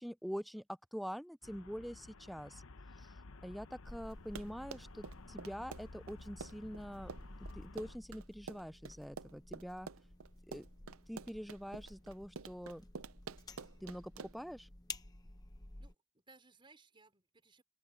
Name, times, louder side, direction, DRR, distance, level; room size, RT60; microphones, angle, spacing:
voice 1, 0.0-2.6 3.0-7.1 7.5-9.9 10.5-10.7 11.1-12.9 13.8-14.7, equal, ahead, 0.3 m, -45 dB
Traffic noise roadway noise, 1.4-8.0, left 3 dB, 75° left, 0.9 m, -54 dB
sound 1, 3.8-15.9, left 2 dB, 20° left, 0.9 m, -54 dB
Run, 4.1-14.5, right 5 dB, 80° right, 0.6 m, -49 dB
voice 2, 15.8-17.6, right 3 dB, 25° right, 5.2 m, -63 dB
open air
head